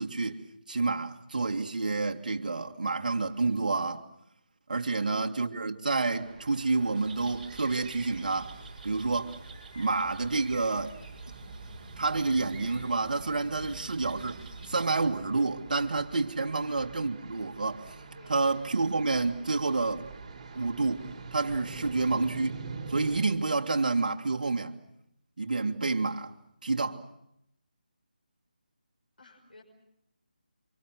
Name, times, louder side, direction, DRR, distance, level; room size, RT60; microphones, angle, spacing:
voice 1, 0.0-4.1 4.7-8.6 8.8-9.4 9.8-11.0 12.0-18.0 18.3-20.1 20.5-22.6 22.9-24.8 25.4-26.3 26.6-27.0, right 3 dB, 60° right, 2.1 m, -29 dB
voice 2, 4.8-5.1 16.4-16.6 18.2-18.5 29.2-29.6, left 2 dB, 80° left, 5.9 m, -55 dB
sound 1, 6.1-23.2, right 4 dB, 35° right, 4.5 m, -46 dB
sound 2, 6.9-14.8, right 3 dB, 15° right, 6.4 m, -46 dB
28.0 x 25.5 x 6.3 m
figure-of-eight pair, 160°, 5 cm